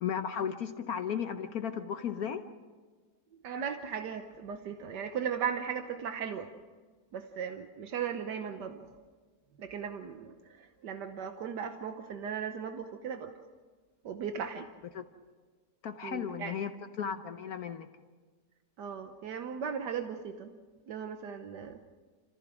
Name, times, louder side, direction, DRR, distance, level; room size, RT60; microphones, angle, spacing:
voice 1, 0.0-2.4 14.9-15.0 15.8-16.7 17.0-17.9, left 8 dB, 65° left, 8 dB, 1.3 m, -35 dB
voice 2, 3.4-6.5 7.1-8.9 9.6-13.3 14.0-14.7 16.0-16.5 18.8-20.5 20.9-21.8, right 7 dB, 85° right, 7 dB, 1.6 m, -37 dB
29.0 x 15.0 x 6.2 m, 1.5 s
omnidirectional pair, 1.8 m